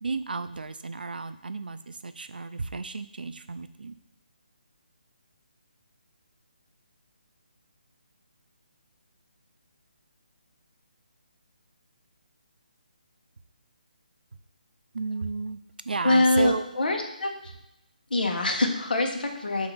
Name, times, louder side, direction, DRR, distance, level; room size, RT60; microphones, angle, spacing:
voice 1, 0.0-4.0 14.9-15.6 15.8-16.7, right 4 dB, 85° right, 11 dB, 0.5 m, -32 dB
voice 2, 16.0-17.5 18.1-19.7, left 2 dB, 75° left, 3 dB, 1.4 m, -24 dB
8.0 x 2.9 x 5.2 m, 0.86 s
hypercardioid pair, 165°, 5 cm